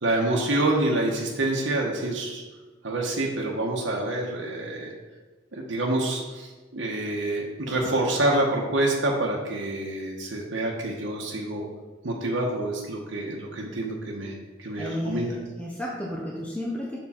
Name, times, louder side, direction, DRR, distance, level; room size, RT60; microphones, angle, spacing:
voice 1, 0.0-2.4 2.8-4.9 5.5-11.7 12.0-15.4, right 2 dB, 85° right, -2 dB, 1.0 m, -27 dB
voice 2, 14.8-17.0, left 1 dB, 5° left, -3 dB, 0.7 m, -32 dB
6.4 x 4.5 x 4.2 m, 1.3 s
head